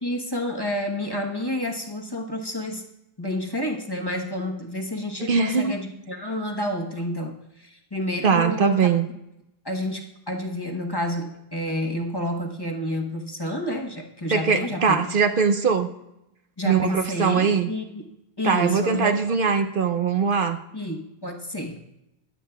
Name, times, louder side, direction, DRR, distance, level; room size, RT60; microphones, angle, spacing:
voice 1, 0.0-2.9 3.2-8.9 9.6-15.0 16.6-18.0 18.4-19.2 20.7-21.8, left 1 dB, 25° left, 1 dB, 1.1 m, -29 dB
voice 2, 5.2-5.8 8.2-9.1 14.3-15.9 16.7-17.7 18.4-20.6, right 5 dB, 60° right, 7 dB, 0.8 m, -21 dB
22.5 x 8.3 x 2.3 m, 0.87 s
omnidirectional pair, 1.0 m